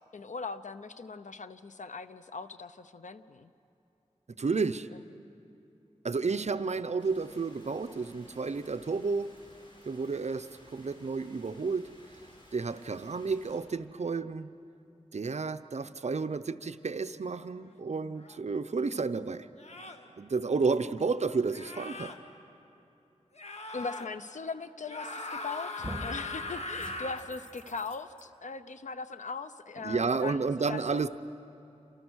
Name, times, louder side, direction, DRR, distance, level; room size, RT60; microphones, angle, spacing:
voice 1, 0.1-3.5 4.9-5.0 23.7-31.0, left 4 dB, 85° left, 11 dB, 0.8 m, -40 dB
voice 2, 4.3-4.9 6.0-9.3 9.9-11.9 12.5-14.5 15.1-19.5 20.2-22.1 29.8-31.1, right 4 dB, 65° right, 10 dB, 0.8 m, -31 dB
sound 1, 7.0-13.6, left 1 dB, 40° left, 6.6 m, -58 dB
sound 2, 18.2-18.4 19.6-20.1 21.5-22.2 23.4-24.1 24.8-27.3, left 3 dB, 65° left, 1.6 m, -39 dB
sound 3, 25.1-25.5 25.8-26.2 26.8-28.2, equal, 10° left, 2.4 m, -43 dB
29.0 x 26.5 x 6.4 m, 2.9 s
wide cardioid pair, 70°, 12 cm